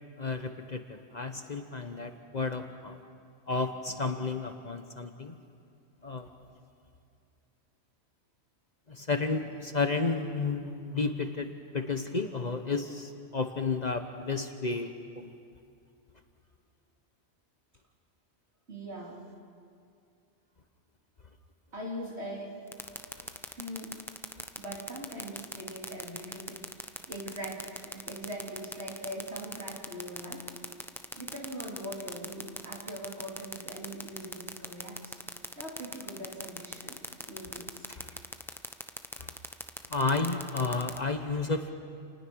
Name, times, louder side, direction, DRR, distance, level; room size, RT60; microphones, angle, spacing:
voice 1, 0.2-3.0 3.5-5.3 6.0-6.3 8.9-15.3 39.2-39.3 39.9-41.7, left 3 dB, 40° left, 7 dB, 1.1 m, -32 dB
voice 2, 18.7-19.2 21.7-22.6 23.1-24.0 24.6-30.5 31.1-35.2 35.6-37.0 37.3-37.9, equal, 65° right, -3 dB, 4.0 m, -41 dB
sound 1, 22.7-41.0, equal, ahead, 0.8 m, -38 dB
29.0 x 20.0 x 6.3 m, 2.4 s
omnidirectional pair, 1.2 m